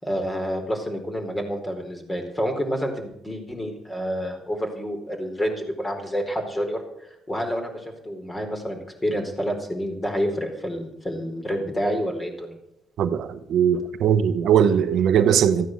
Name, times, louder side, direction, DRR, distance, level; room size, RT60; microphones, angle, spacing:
voice 1, 0.0-12.6, equal, 20° left, 4.4 m, -28 dB
voice 2, 13.0-15.7, right 8 dB, 75° right, 1.1 m, -20 dB
15.0 x 9.4 x 8.0 m
cardioid pair, 90°, 0 cm